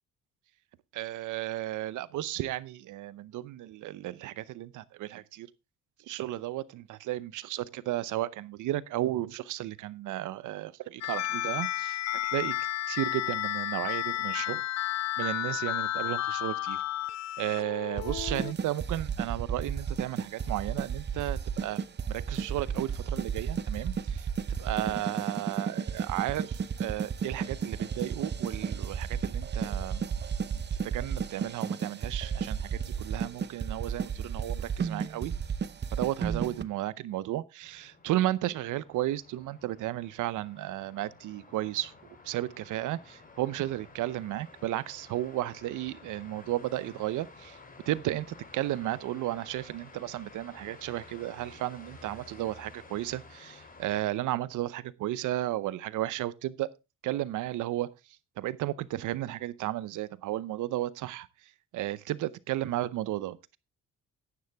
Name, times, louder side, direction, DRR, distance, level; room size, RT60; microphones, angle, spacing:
voice 1, 0.9-5.5 6.1-12.5 12.9-14.6 15.2-16.8 17.4-24.3 24.6-35.3 35.9-41.9 42.2-47.6 47.9-56.7 57.0-57.9 58.4-61.3 61.7-63.6, right 14 dB, 80° right, 0.8 m, -34 dB
sound 1, 11.0-18.5, left 13 dB, 60° left, 0.5 m, -32 dB
sound 2, 18.0-36.6, right 6 dB, 35° right, 0.8 m, -33 dB
sound 3, 37.6-54.0, left 3 dB, 30° left, 3.3 m, -53 dB
11.0 x 9.6 x 3.4 m
cardioid pair, 90°, 30 cm